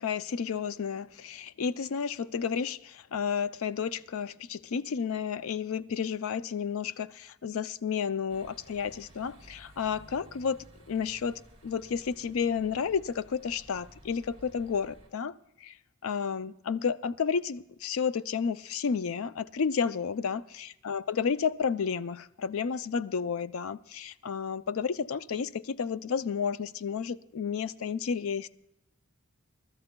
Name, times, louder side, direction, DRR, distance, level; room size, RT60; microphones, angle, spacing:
voice 1, 0.0-15.3 15.6-15.7 16.0-28.5, left 6 dB, 75° left, 0.4 m, -31 dB
sound 1, 8.3-15.1, right 1 dB, 30° right, 2.3 m, -55 dB
27.0 x 13.0 x 2.2 m
head